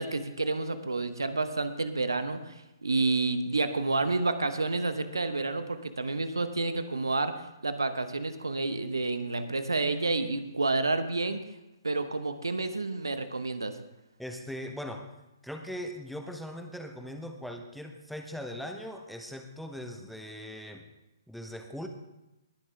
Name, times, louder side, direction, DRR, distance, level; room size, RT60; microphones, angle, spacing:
voice 1, 0.0-11.4 11.8-13.8, right 3 dB, 75° right, 10 dB, 1.0 m, -29 dB
voice 2, 14.2-15.1 15.4-20.8 21.3-21.9, equal, ahead, 4 dB, 0.8 m, -40 dB
20.5 x 7.4 x 3.5 m, 0.93 s
figure-of-eight pair, 130°, 2 cm